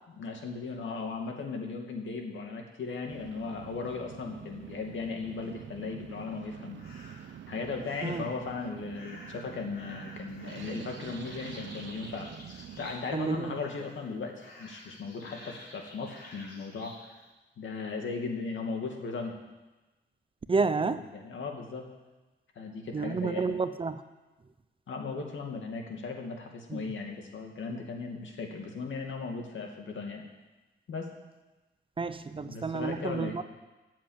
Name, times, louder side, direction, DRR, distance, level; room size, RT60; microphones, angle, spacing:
voice 1, 0.2-6.8 7.3-17.2 17.6-19.4 20.8-21.9 22.6-23.6 24.9-30.2 30.9-31.1 32.4-33.4, left 4 dB, 75° left, 2 dB, 2.3 m, -37 dB
sound 1, 3.1-12.9, right 9 dB, 75° right, 0.7 m, -46 dB
sound 2, 6.8-7.3 7.8-8.4 8.9-13.3 13.5-14.1 14.4-17.0, left 2 dB, 55° left, 4.8 m, -50 dB
voice 2, 13.1-13.6 20.5-21.1 22.9-24.0 26.7-26.9 32.0-33.4, right 4 dB, 25° right, 11 dB, 0.6 m, -30 dB
13.5 x 7.5 x 8.8 m, 1.1 s
wide cardioid pair, 150°, 20 cm